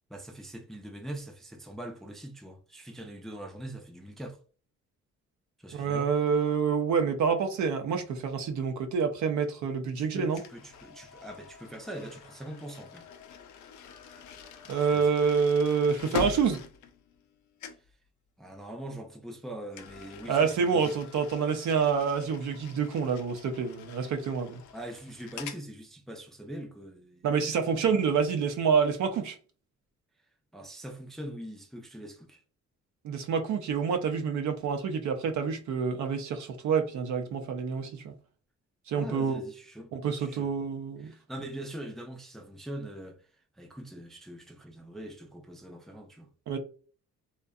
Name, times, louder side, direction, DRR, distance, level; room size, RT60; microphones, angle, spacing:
voice 1, 0.1-4.4 5.6-6.1 10.0-13.1 14.8-15.2 18.4-21.0 24.7-27.3 27.7-27.8 30.5-32.4 39.0-39.9 40.2-40.5 41.0-43.3 43.6-46.3, right 1 dB, ahead, 0.3 m, -42 dB
voice 2, 5.7-10.4 14.7-16.6 20.3-24.6 27.2-29.4 33.0-38.1 38.9-39.4 39.9-41.1 46.5-46.6, right 6 dB, 70° right, 0.6 m, -27 dB
sound 1, 10.4-17.3 17.6-17.9 19.7-25.7, left 7 dB, 70° left, 0.5 m, -43 dB
2.6 x 2.2 x 2.3 m
cardioid pair, 90°, 30 cm